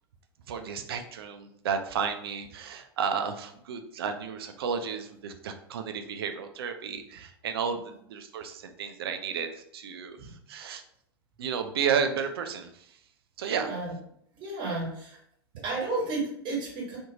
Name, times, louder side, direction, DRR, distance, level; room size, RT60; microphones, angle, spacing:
voice 1, 0.5-10.8 11.4-12.7 13.4-13.7, right 6 dB, 65° right, 6 dB, 0.4 m, -32 dB
voice 2, 13.5-13.9 14.4-15.2 15.6-17.0, right 3 dB, 35° right, -3 dB, 1.3 m, -32 dB
2.7 x 2.5 x 2.7 m, 0.71 s
figure-of-eight pair, 85°, 13 cm